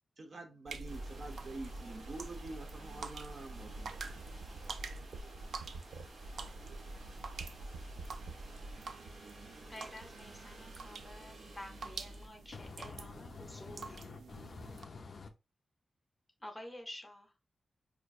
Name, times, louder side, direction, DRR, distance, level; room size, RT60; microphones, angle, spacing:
voice 1, 0.2-4.5, right 2 dB, 45° right, 0.6 m, -47 dB
sound 1, 0.7-14.8, right 3 dB, 85° right, 0.3 m, -46 dB
sound 2, 0.8-12.3, right 1 dB, 60° right, 1.2 m, -53 dB
voice 2, 9.7-14.0 16.4-17.3, left 1 dB, 10° left, 0.7 m, -50 dB
voice 3, 12.5-15.3, left 4 dB, 45° left, 0.3 m, -49 dB
4.4 x 2.5 x 2.3 m
wide cardioid pair, 180°, 0 cm